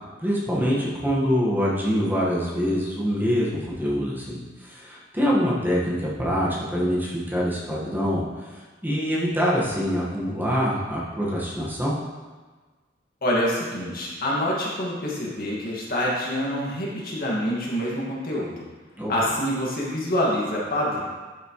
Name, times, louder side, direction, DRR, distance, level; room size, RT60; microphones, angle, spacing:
voice 1, 0.2-12.0 19.0-19.1, equal, 10° right, -6 dB, 1.7 m, -25 dB
voice 2, 13.2-18.7 19.1-21.0, equal, 55° left, -5 dB, 2.2 m, -26 dB
11.5 x 6.6 x 3.3 m, 1.3 s
head